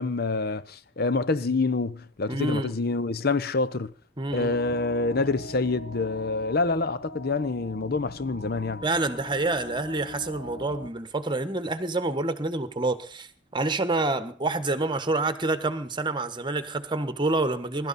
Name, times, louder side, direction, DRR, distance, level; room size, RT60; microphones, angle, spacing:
voice 1, 0.0-3.9 4.3-8.8, left 3 dB, 55° left, 0.8 m, -27 dB
voice 2, 2.3-2.7 4.2-4.6 8.8-17.9, right 2 dB, 25° right, 1.2 m, -27 dB
sound 1, 4.3-10.9, left 1 dB, 70° left, 1.2 m, -42 dB
22.0 x 12.5 x 4.2 m
head